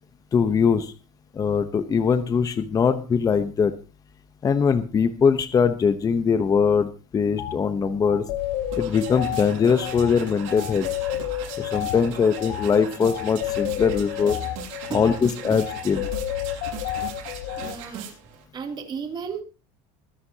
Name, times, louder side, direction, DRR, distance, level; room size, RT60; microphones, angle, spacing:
voice 1, 0.3-0.9 1.3-3.7 4.4-8.2 8.8-10.9 11.6-14.4 14.9-16.1, left 6 dB, 20° left, 10 dB, 0.9 m, -21 dB
sound 1, 7.4-7.6 8.0-17.7, left 13 dB, 80° left, 2.7 m, -31 dB
sound 2, 8.4-18.4, right 8 dB, 85° right, 6.1 m, -39 dB
voice 2, 17.6-18.1 18.5-19.4, right 6 dB, 30° right, 4 dB, 2.7 m, -33 dB
23.0 x 11.0 x 2.8 m, 0.32 s
cardioid pair, 145°, 16 cm